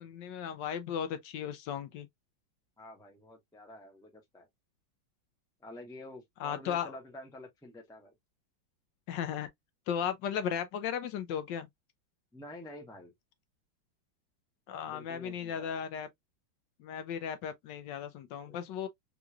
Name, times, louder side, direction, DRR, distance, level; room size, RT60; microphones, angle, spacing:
voice 1, 0.0-2.1 6.4-7.0 9.1-9.5 9.9-11.7 14.7-16.1 16.8-18.9, left 8 dB, 75° left, 1.2 m, -36 dB
voice 2, 2.8-4.5 5.6-8.1 12.3-13.1 14.8-15.7 18.4-18.6, left 1 dB, 5° left, 0.4 m, -49 dB
3.7 x 3.0 x 2.2 m
omnidirectional pair, 2.1 m